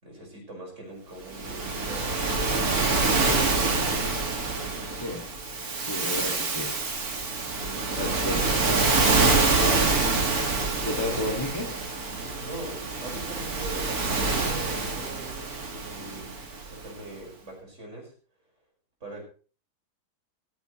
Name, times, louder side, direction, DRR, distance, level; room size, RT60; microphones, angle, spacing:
voice 1, 0.0-4.0 7.5-8.5 10.6-11.7 12.2-18.1 19.0-19.2, right 1 dB, 45° right, -1 dB, 6.2 m, -42 dB
Waves surf, 1.3-16.8, right 3 dB, 60° right, 2.7 m, -26 dB
voice 2, 5.0-5.3 5.8-6.7 8.0-8.6 9.6-9.9 10.9-11.7, left 1 dB, 15° left, 0 dB, 2.4 m, -32 dB
15.5 x 15.0 x 3.2 m, 0.39 s
omnidirectional pair, 1.8 m